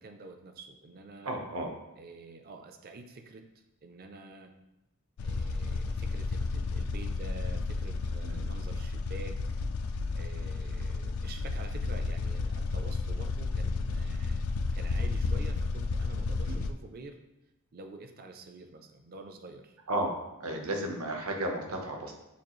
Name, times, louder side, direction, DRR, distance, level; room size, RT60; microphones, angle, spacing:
voice 1, 0.0-1.4 2.0-3.4 3.8-4.6 5.2-9.4 10.2-17.2 17.7-19.8, right 2 dB, 45° right, 6 dB, 0.5 m, -47 dB
voice 2, 1.2-1.7 8.2-8.4 16.5-16.6 19.9-20.1 20.4-22.1, right 1 dB, 80° right, 2 dB, 0.9 m, -33 dB
sound 1, 5.2-16.7, left 3 dB, 70° left, 0.3 m, -32 dB
6.9 x 2.4 x 3.1 m, 0.97 s
head